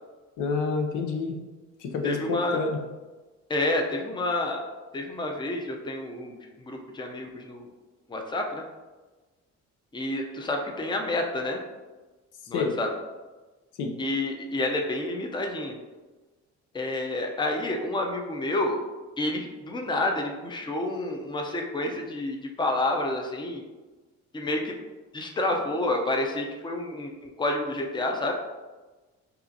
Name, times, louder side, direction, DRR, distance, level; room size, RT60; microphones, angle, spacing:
voice 1, 0.4-1.4 1.8-2.8 12.5-12.7 13.8-13.9, left 4 dB, 85° left, 3 dB, 0.6 m, -28 dB
voice 2, 2.0-2.6 3.5-4.6 4.9-7.7 8.1-8.6 9.9-11.6 12.5-12.9 14.0-15.7 16.7-18.8 19.2-23.6 24.3-24.8 25.1-28.3, left 2 dB, 15° left, 2 dB, 0.5 m, -29 dB
5.5 x 2.4 x 2.7 m, 1.2 s
cardioid pair, 90°, 30 cm